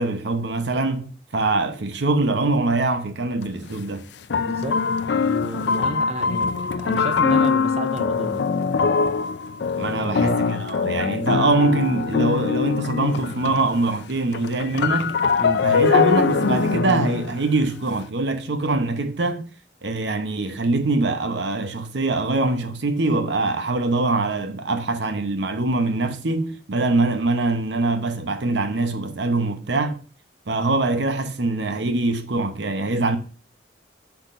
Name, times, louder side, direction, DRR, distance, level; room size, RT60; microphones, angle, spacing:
voice 1, 0.0-4.0 9.8-15.2 15.6-19.4 19.8-30.0 30.5-33.2, right 2 dB, 90° right, 0.9 m, -23 dB
sound 1, 3.4-3.5 4.3-13.8 14.1-18.0, left 5 dB, 80° left, 0.5 m, -22 dB
voice 2, 4.4-4.8 5.2-8.5 10.0-10.4 15.4-15.7, right 2 dB, 35° right, 0.6 m, -31 dB
8.3 x 5.9 x 2.6 m
head